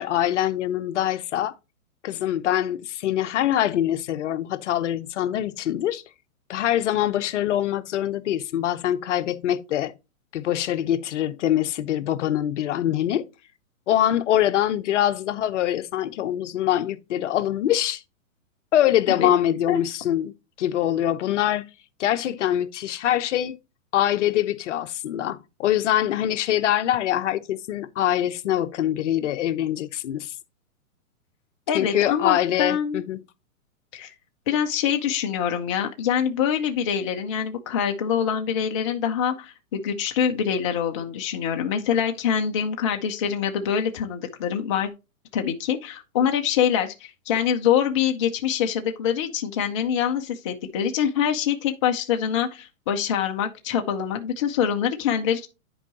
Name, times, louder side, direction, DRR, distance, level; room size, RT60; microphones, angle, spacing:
voice 1, 0.0-1.5 2.0-6.0 6.5-9.9 10.3-13.2 13.9-18.0 18.7-20.3 20.6-21.7 22.0-23.6 23.9-30.3 31.7-33.2, left 12 dB, 55° left, 0.8 m, -24 dB
voice 2, 31.7-33.0 33.9-34.1 34.5-44.9 45.3-55.5, left 8 dB, 25° left, 0.4 m, -25 dB
10.5 x 4.6 x 2.9 m
hypercardioid pair, 145°, 43 cm